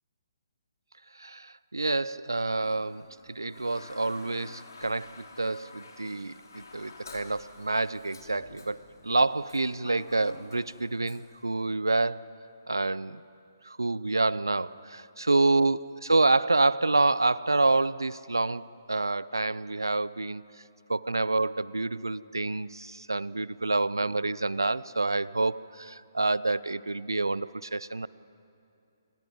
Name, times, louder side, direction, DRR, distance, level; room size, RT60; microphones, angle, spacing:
voice 1, 1.2-12.3 12.7-13.2 13.6-20.4 20.9-28.1, right 2 dB, 85° right, 19 dB, 0.6 m, -28 dB
Toilet flush, 2.3-11.4, left 3 dB, 65° left, 3.0 m, -50 dB
30.0 x 27.0 x 5.4 m, 2.6 s
figure-of-eight pair, 135°, 2 cm